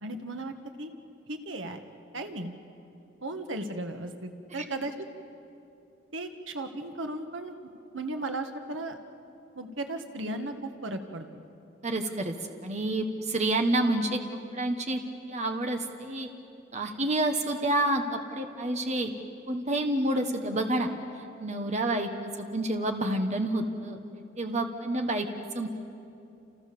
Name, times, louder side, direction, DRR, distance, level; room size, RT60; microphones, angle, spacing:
voice 1, 0.0-0.5 0.8-0.9 1.3-1.8 2.1-2.5 3.2-4.9 6.1-7.6 7.9-9.0 9.5-11.4, right 2 dB, 75° right, 6 dB, 1.7 m, -36 dB
voice 2, 11.8-12.3 12.6-14.2 14.5-15.0 15.3-16.3 16.7-19.1 19.5-20.9 21.4-24.0 24.4-25.3 25.5-25.7, right 1 dB, 35° right, 5 dB, 1.4 m, -28 dB
29.5 x 28.5 x 7.0 m, 2.7 s
head